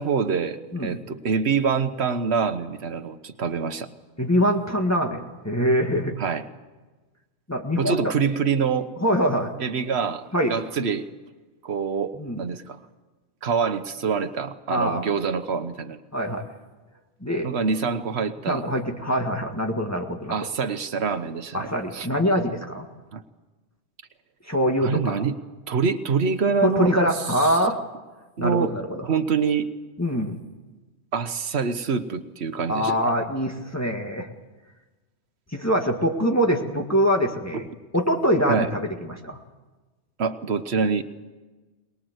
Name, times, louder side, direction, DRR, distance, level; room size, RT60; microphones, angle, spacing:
voice 1, 0.0-3.9 6.2-6.4 7.8-8.9 9.6-11.1 11.6-12.8 13.4-16.0 17.4-18.6 20.3-22.1 23.1-23.2 24.8-25.4 25.7-26.9 27.4-27.6 28.4-28.7 29.0-29.7 31.1-33.0 38.5-38.7 40.2-41.0, right 5 dB, 75° right, 9 dB, 1.4 m, -25 dB
voice 2, 4.2-6.2 7.5-8.1 9.0-9.5 10.3-10.5 12.2-12.4 14.7-15.0 16.1-16.4 17.2-17.5 18.5-20.3 21.5-22.9 24.5-25.2 26.6-27.8 28.4-29.0 30.0-30.4 32.7-34.3 35.5-37.7 37.9-39.4, equal, 15° left, 1 dB, 1.8 m, -24 dB
23.0 x 21.0 x 8.0 m, 1.2 s
omnidirectional pair, 1.1 m